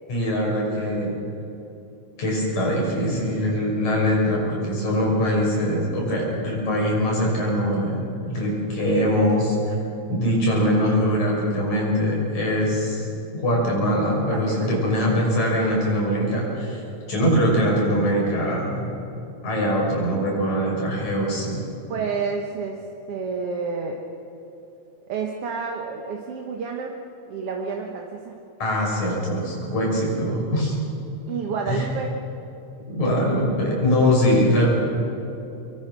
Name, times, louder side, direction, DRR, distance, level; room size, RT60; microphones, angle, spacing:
voice 1, 0.1-1.1 2.2-9.6 10.1-13.1 13.3-16.8 17.1-18.9 19.4-21.6 28.6-30.8 31.7-31.9 32.9-34.7, equal, 75° left, -2 dB, 7.6 m, -22 dB
voice 2, 14.3-14.8 21.9-24.0 25.1-26.9 27.3-28.4 31.3-32.1, right 5 dB, 55° right, 1 dB, 2.3 m, -30 dB
26.0 x 22.0 x 6.2 m, 2.9 s
omnidirectional pair, 3.3 m